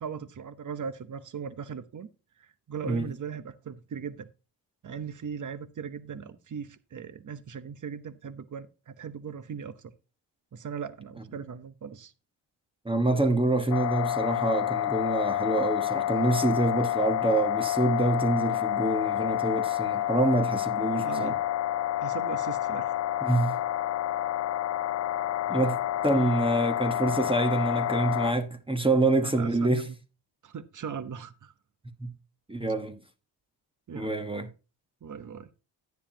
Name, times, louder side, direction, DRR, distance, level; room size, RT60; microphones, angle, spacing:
voice 1, 0.0-2.1 2.4-4.3 4.8-9.9 10.5-12.1 21.0-21.4 22.0-22.9 29.2-30.0 30.4-31.5 33.9-34.1 35.0-35.5, right 7 dB, 40° right, 1.1 m, -39 dB
voice 2, 12.8-21.3 23.2-23.6 25.5-25.8 26.0-29.9 32.0-32.1 32.5-33.0 33.9-34.5, right 2 dB, 10° right, 1.2 m, -26 dB
sound 1, 13.7-28.3, left 13 dB, 40° left, 0.4 m, -29 dB
10.5 x 9.8 x 2.8 m
supercardioid pair, 70°, 47 cm